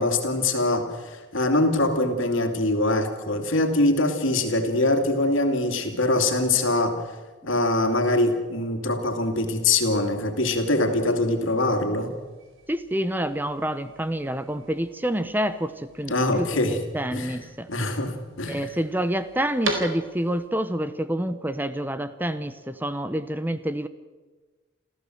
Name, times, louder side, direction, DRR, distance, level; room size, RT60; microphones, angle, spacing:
voice 1, 0.0-7.0 7.4-12.1 16.1-16.8 17.1-17.4 17.7-18.7, left 2 dB, 85° left, 6 dB, 2.7 m, -23 dB
sound 1, 12.0-20.5, right 2 dB, 90° right, 4.1 m, -39 dB
voice 2, 12.7-17.7 18.5-23.9, right 1 dB, 10° right, 12 dB, 0.8 m, -28 dB
28.0 x 14.5 x 7.9 m, 1.3 s
head